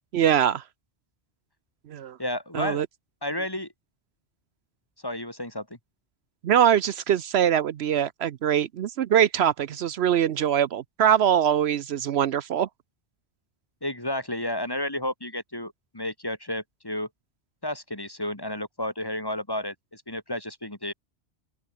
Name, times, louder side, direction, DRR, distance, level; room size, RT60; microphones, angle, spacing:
voice 1, 0.1-0.6 1.9-2.2 2.5-2.9 6.4-12.7, right 9 dB, 70° right, 0.9 m, -23 dB
voice 2, 2.2-2.8 3.2-3.7 5.0-5.7 13.8-17.1 17.6-20.9, left 1 dB, 20° left, 2.7 m, -32 dB
open air
omnidirectional pair, 1.1 m